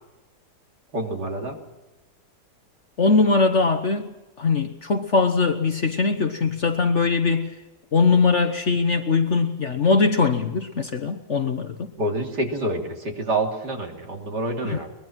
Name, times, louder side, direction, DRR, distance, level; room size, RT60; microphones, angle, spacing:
voice 1, 0.9-1.6 12.0-14.9, right 1 dB, 80° right, 2 dB, 3.7 m, -27 dB
voice 2, 3.0-7.6 7.9-11.9 14.6-14.8, left 4 dB, 45° left, 7 dB, 1.4 m, -21 dB
22.5 x 21.5 x 6.1 m, 1.1 s
omnidirectional pair, 1.8 m